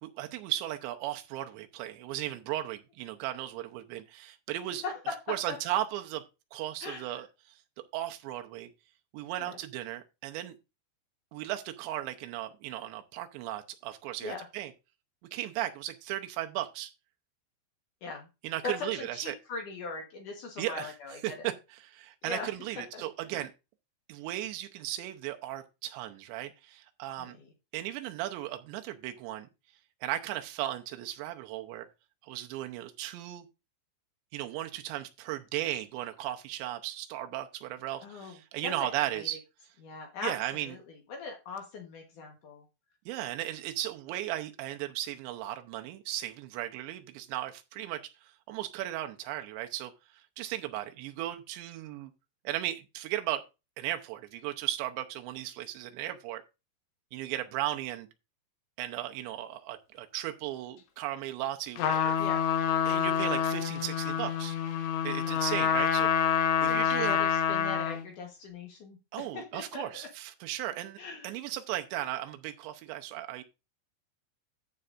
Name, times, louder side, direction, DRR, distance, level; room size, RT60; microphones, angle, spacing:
voice 1, 0.0-4.8 5.3-6.2 6.5-7.3 7.8-8.7 9.1-10.6 11.3-14.7 15.3-16.9 18.4-19.4 20.6-21.0 21.2-23.5 24.1-27.4 27.7-29.5 30.0-31.9 32.2-33.5 34.3-39.4 40.2-40.8 43.1-52.1 52.4-53.4 53.8-56.4 57.1-58.1 58.8-62.2 62.9-64.6 65.0-67.2 69.1-73.4, right 14 dB, 85° right, 3.1 m, -36 dB
voice 2, 4.8-5.6 6.8-7.2 9.4-9.6 14.2-14.5 18.0-18.3 18.6-21.5 22.2-22.5 22.9-23.0 23.4-23.5 27.2-27.5 38.0-38.4 38.6-38.7 39.1-39.3 39.8-40.3 40.6-42.6 62.2-62.4 65.2-65.6 66.6-70.1 71.0-71.3, left 4 dB, 65° left, 2.2 m, -40 dB
Trumpet, 61.8-68.1, left 8 dB, 80° left, 3.3 m, -27 dB
14.0 x 6.6 x 2.5 m
omnidirectional pair, 5.1 m